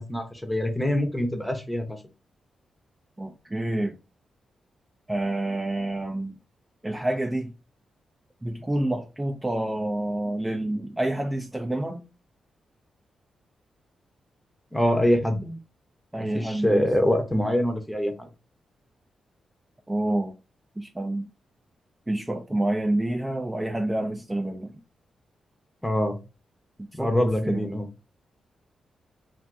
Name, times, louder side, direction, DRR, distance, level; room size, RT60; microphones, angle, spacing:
voice 1, 0.0-2.0 14.7-15.6 16.2-18.3 25.8-26.2 26.9-27.9, left 1 dB, 10° left, 0.8 m, -24 dB
voice 2, 3.2-4.0 5.1-6.4 6.8-7.5 8.4-12.0 16.1-16.9 19.9-20.3 20.8-21.3 22.1-24.8 27.0-27.7, right 1 dB, 15° right, 0.4 m, -28 dB
2.5 x 2.5 x 3.3 m
cardioid pair, 70°, 0 cm